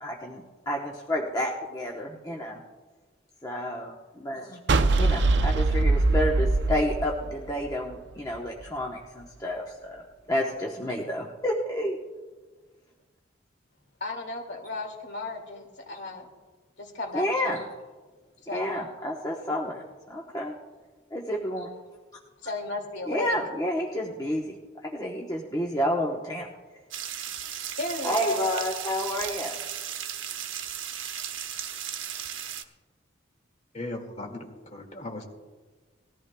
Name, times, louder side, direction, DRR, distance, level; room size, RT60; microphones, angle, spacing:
voice 1, 0.0-2.6 3.4-4.6 5.0-10.0 10.3-12.0 17.1-17.6 18.5-19.8 20.1-20.5 21.1-21.7 23.1-24.5 24.8-26.5 28.0-29.6, equal, 20° left, -2 dB, 0.9 m, -30 dB
sound 1, 4.7-7.9, right 3 dB, 60° right, 0.5 m, -22 dB
voice 2, 4.9-5.2 14.0-16.3 16.8-17.6 18.4-18.7 22.4-23.4 27.8-28.5, left 2 dB, 65° left, 2 dB, 2.3 m, -34 dB
sound 2, 26.9-32.6, right 9 dB, 75° right, 0.9 m, -35 dB
voice 3, 33.7-35.2, left 2 dB, 35° left, 1 dB, 2.0 m, -37 dB
20.0 x 14.5 x 2.2 m, 1.3 s
head